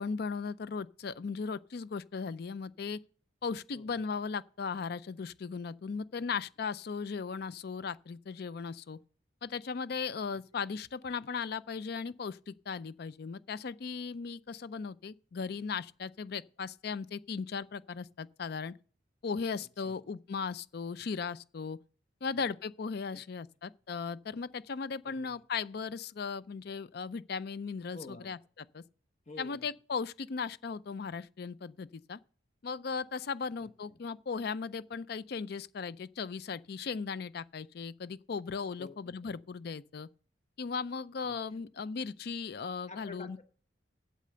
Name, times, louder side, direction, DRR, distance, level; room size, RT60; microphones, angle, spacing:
voice 1, 0.0-3.0 3.4-9.0 9.4-18.7 19.2-21.8 22.2-28.4 28.7-28.8 29.4-32.2 32.6-40.1 40.6-43.4, left 5 dB, 55° left, 0.4 m, -37 dB
voice 2, 27.9-28.3 29.3-29.7 33.9-34.0 38.8-39.0 39.2-39.4 41.2-41.6 42.9-43.4, left 3 dB, 35° left, 1.1 m, -49 dB
8.3 x 7.7 x 6.7 m
head